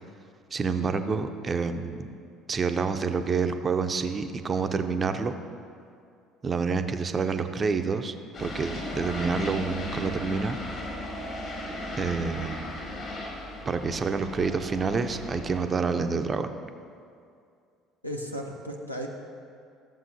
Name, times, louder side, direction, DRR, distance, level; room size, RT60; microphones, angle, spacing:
voice 1, 0.5-2.1 2.5-5.3 6.4-8.1 8.4-10.6 12.0-12.7 13.7-16.5, right 5 dB, 30° right, 8 dB, 0.5 m, -28 dB
sound 1, 8.3-15.6, left 1 dB, 45° left, 2.0 m, -36 dB
voice 2, 18.0-19.1, equal, 90° left, 1 dB, 0.6 m, -35 dB
14.0 x 7.3 x 2.6 m, 2.4 s
figure-of-eight pair, 60°, 0 cm